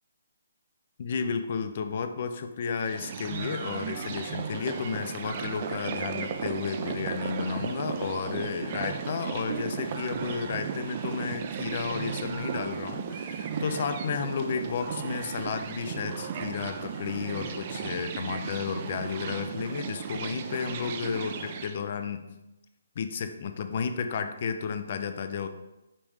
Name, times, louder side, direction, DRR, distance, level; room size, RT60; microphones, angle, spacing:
voice 1, 1.0-22.2 23.0-25.5, left 6 dB, 45° left, 8 dB, 0.4 m, -32 dB
sound 1, 2.8-21.8, right 7 dB, 40° right, 0.4 m, -35 dB
5.0 x 3.0 x 3.5 m, 0.97 s
hypercardioid pair, 150°, 0 cm